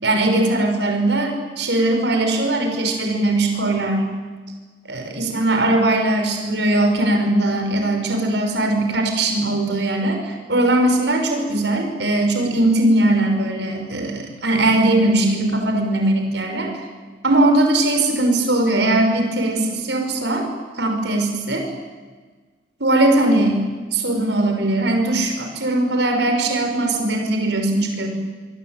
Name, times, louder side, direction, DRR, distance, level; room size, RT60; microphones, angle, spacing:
voice 1, 0.0-4.1 4.9-16.8 17.2-20.5 20.8-21.7 22.8-23.6 23.9-28.1, right 1 dB, 85° right, 4 dB, 5.9 m, -20 dB
26.0 x 24.5 x 9.2 m, 1.4 s
head